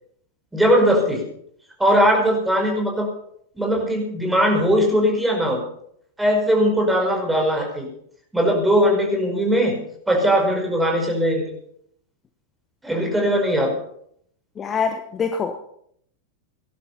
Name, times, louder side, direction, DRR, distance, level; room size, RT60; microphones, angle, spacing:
voice 1, 0.5-1.2 1.8-3.1 3.6-5.6 6.2-7.9 8.3-9.8 10.1-11.5 12.8-13.7, equal, 5° right, 1 dB, 5.3 m, -19 dB
voice 2, 14.6-15.6, left 5 dB, 25° left, 7 dB, 1.3 m, -25 dB
18.5 x 11.5 x 5.6 m, 0.69 s
figure-of-eight pair, 90°, 0 cm